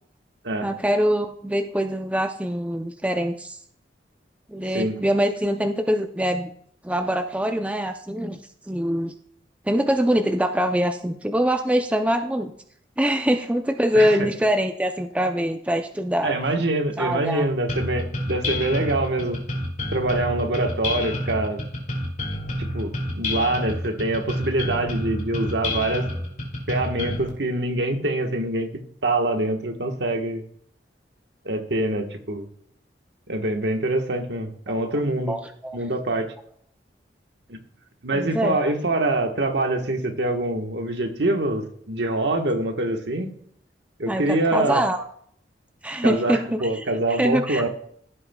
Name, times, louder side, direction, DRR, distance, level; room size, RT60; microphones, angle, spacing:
voice 1, 0.6-3.6 4.5-6.5 6.8-8.4 8.7-9.1 9.7-12.5 13.0-16.3 17.0-17.5 23.6-23.7 35.3-35.8 38.1-38.6 44.0-45.0 45.8-46.8 47.1-47.7, equal, 5° right, 5 dB, 0.5 m, -24 dB
voice 2, 13.9-14.3 16.2-19.4 19.9-21.6 22.7-26.1 26.7-28.7 29.0-30.4 31.4-32.5 33.3-35.4 35.7-36.3 37.5-37.6 38.0-43.3 44.0-44.8 46.0-47.7, right 2 dB, 70° right, 4 dB, 1.3 m, -25 dB
sound 1, 17.7-27.3, left 1 dB, 45° left, 2.6 m, -29 dB
16.0 x 8.0 x 2.3 m, 0.64 s
head